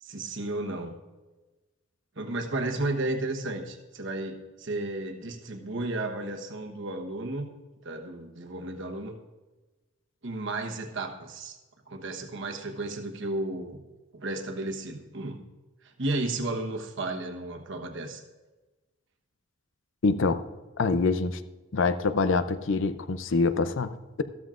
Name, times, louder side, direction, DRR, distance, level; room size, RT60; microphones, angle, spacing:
voice 1, 0.0-1.0 2.2-7.5 7.8-9.1 10.2-11.6 11.9-13.8 14.1-15.4 16.0-18.2, right 2 dB, 60° right, 4 dB, 1.2 m, -33 dB
voice 2, 20.0-20.4 20.8-21.4 21.7-24.2, left 3 dB, 60° left, 12 dB, 0.6 m, -25 dB
13.5 x 13.0 x 2.5 m, 1.2 s
head